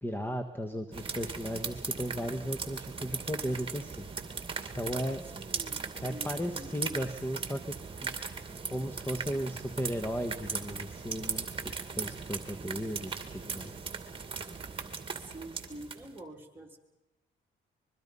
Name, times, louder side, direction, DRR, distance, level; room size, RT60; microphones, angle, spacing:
voice 1, 0.0-4.1 4.7-5.2 6.0-7.8 8.0-8.2 8.7-11.5 11.9-13.9, equal, 10° left, 8 dB, 1.5 m, -35 dB
sound 1, 0.9-16.2, right 5 dB, 25° right, 2.3 m, -39 dB
voice 2, 5.2-7.0 15.2-16.8, right 1 dB, 10° right, 0 dB, 3.6 m, -47 dB
25.0 x 22.0 x 5.5 m, 1.0 s
cardioid pair, 90°, 20 cm